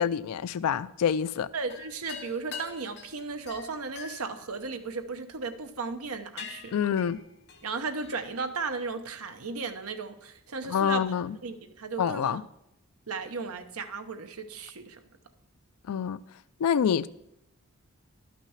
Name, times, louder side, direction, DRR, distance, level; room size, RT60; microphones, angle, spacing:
voice 1, 0.0-1.5 6.7-7.2 10.7-11.4 12.0-12.4 15.9-16.2 16.6-17.1, left 8 dB, 90° left, 0.4 m, -26 dB
voice 2, 1.5-6.9 7.6-11.0 11.4-12.4 13.1-15.0, right 4 dB, 80° right, 1.0 m, -35 dB
sound 1, 1.7-5.4 5.9-6.1 6.4-8.3, left 6 dB, 50° left, 0.9 m, -44 dB
12.0 x 6.0 x 5.7 m
head